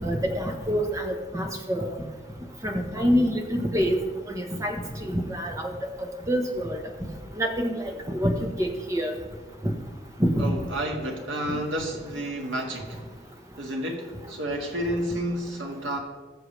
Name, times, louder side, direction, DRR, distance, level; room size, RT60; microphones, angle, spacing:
voice 1, 0.0-1.9 2.6-4.0 4.3-4.8 5.0-5.7 6.0-6.8 7.4-9.1 10.2-10.5, equal, 15° right, 3 dB, 1.1 m, -26 dB
voice 2, 10.4-13.0 13.6-16.0, right 1 dB, 75° right, 1 dB, 1.8 m, -30 dB
19.5 x 6.8 x 3.3 m, 1.4 s
head